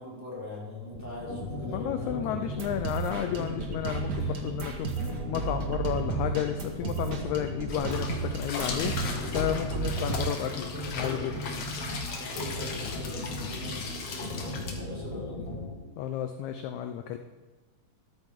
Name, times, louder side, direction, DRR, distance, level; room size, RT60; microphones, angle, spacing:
voice 1, 0.0-2.5 4.2-4.4 12.1-15.5, left 1 dB, 5° right, -8 dB, 4.3 m, -42 dB
sound 1, 0.9-15.7, left 1 dB, 10° left, 4.4 m, -37 dB
voice 2, 1.7-11.4 16.0-17.2, left 10 dB, 80° left, 7 dB, 1.7 m, -32 dB
sound 2, 2.6-10.4, right 6 dB, 65° right, 1.0 m, -34 dB
sound 3, 7.7-14.8, left 4 dB, 55° left, 2.1 m, -37 dB
13.5 x 13.0 x 3.7 m, 1.2 s
omnidirectional pair, 3.9 m